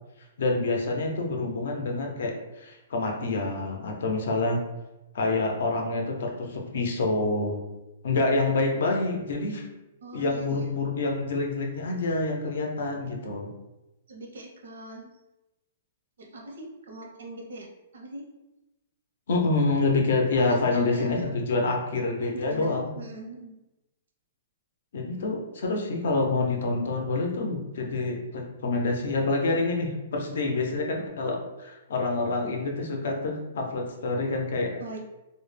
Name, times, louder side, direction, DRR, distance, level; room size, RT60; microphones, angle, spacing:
voice 1, 0.4-4.6 5.1-7.6 8.0-9.6 10.1-13.5 19.3-22.9 24.9-34.8, left 3 dB, 60° left, 1 dB, 0.5 m, -27 dB
voice 2, 10.0-10.8 14.1-15.1 16.2-17.7 17.9-18.2 20.4-21.4 22.3-23.5 34.8-35.0, right 2 dB, 85° right, 0 dB, 0.7 m, -41 dB
2.2 x 2.0 x 3.2 m, 0.98 s
hypercardioid pair, 180°, 0 cm